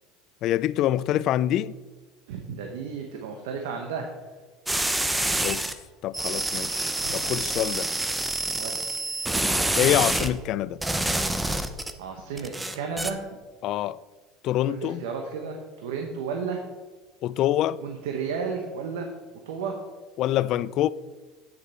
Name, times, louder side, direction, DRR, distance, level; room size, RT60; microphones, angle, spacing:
voice 1, 0.4-1.7 5.4-5.7 6.0-7.9 9.8-10.8 13.6-14.0 14.4-15.0 17.2-17.8 20.2-20.9, left 13 dB, 50° left, 0.3 m, -25 dB
voice 2, 2.3-4.1 7.0-7.1 8.6-9.0 12.0-13.4 14.7-16.6 17.8-19.1 19.5-19.7, right 5 dB, 90° right, 1.1 m, -33 dB
sound 1, 4.7-5.7 6.1-10.3 10.8-11.9 12.4-13.1, right 2 dB, 5° right, 0.6 m, -27 dB
9.4 x 6.6 x 4.4 m
supercardioid pair, 125°, 0 cm